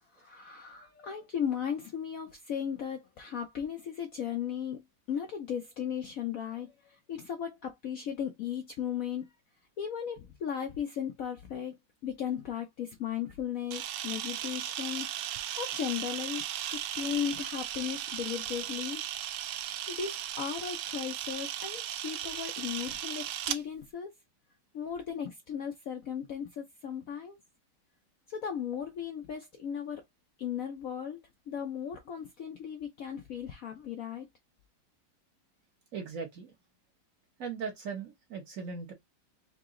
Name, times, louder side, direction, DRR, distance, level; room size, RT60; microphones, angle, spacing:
voice 1, 0.0-9.3 9.8-16.4 16.7-19.0 19.5-24.1 24.7-27.4 28.3-30.0 30.4-34.3, left 8 dB, 65° left, 0.8 m, -36 dB
Camera, 13.7-23.6, right 11 dB, 75° right, 1.2 m, -36 dB
voice 2, 35.9-36.5 37.4-38.9, right 5 dB, 50° right, 1.2 m, -38 dB
3.9 x 2.9 x 3.6 m
omnidirectional pair, 2.1 m